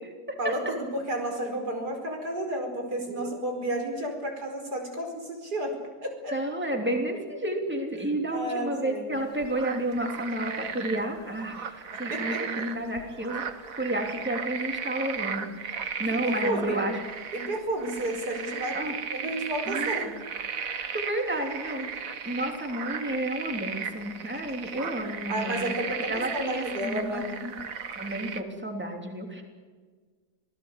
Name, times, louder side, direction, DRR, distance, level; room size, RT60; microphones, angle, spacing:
voice 1, 0.4-5.7 6.0-6.3 8.3-9.2 12.1-12.6 16.0-16.8 17.3-18.8 19.1-20.1 25.3-27.4, right 1 dB, 80° right, 3 dB, 5.6 m, -32 dB
voice 2, 6.3-13.4 13.8-16.9 18.7-18.9 19.7-20.1 20.9-21.9 22.2-27.5 27.9-29.4, right 1 dB, 5° right, 3 dB, 3.1 m, -31 dB
sound 1, 9.2-28.4, right 6 dB, 60° right, 1.7 m, -36 dB
26.5 x 18.0 x 8.3 m, 1.5 s
omnidirectional pair, 1.7 m